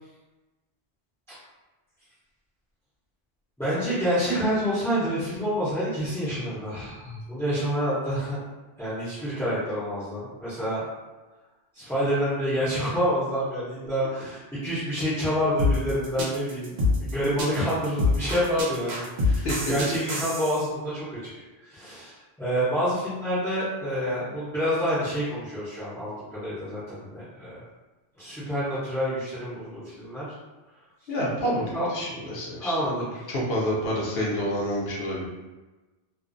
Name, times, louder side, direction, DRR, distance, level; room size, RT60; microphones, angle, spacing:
voice 1, 3.6-8.4 8.8-10.8 11.7-21.3 21.6-27.6 28.2-30.3 31.7-32.0 32.6-33.1, equal, 5° left, -12 dB, 0.5 m, -28 dB
sound 1, 15.6-20.6, left 3 dB, 65° right, 0.8 m, -25 dB
voice 2, 31.1-32.7 33.3-35.3, equal, 60° left, -4 dB, 0.8 m, -28 dB
2.4 x 2.0 x 2.5 m, 1.2 s
omnidirectional pair, 1.2 m